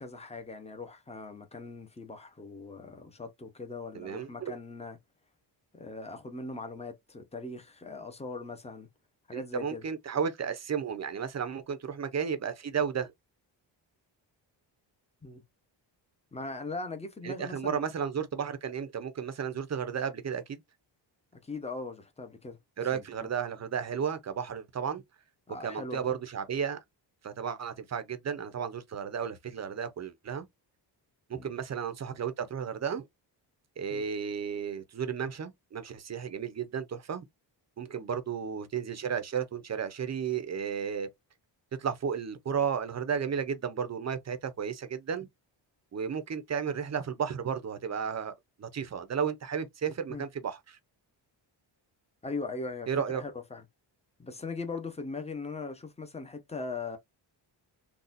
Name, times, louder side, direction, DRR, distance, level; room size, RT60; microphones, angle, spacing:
voice 1, 0.0-5.0 5.7-8.9 9.3-9.8 15.2-15.4 16.3-17.9 21.4-22.6 22.9-23.3 25.5-26.2 31.3-31.5 33.9-34.1 50.1-50.3 52.2-53.6 54.2-57.0, left 3 dB, 15° left, 0.8 m, -40 dB
voice 2, 3.9-4.5 9.3-13.1 17.2-20.6 22.8-25.0 25.6-26.8 27.2-30.5 31.3-33.1 33.8-37.2 37.8-41.1 41.8-45.3 45.9-48.3 48.6-50.8 52.9-53.2, right 7 dB, 35° right, 0.7 m, -33 dB
4.0 x 2.4 x 2.5 m
cardioid pair, 125°, 45 cm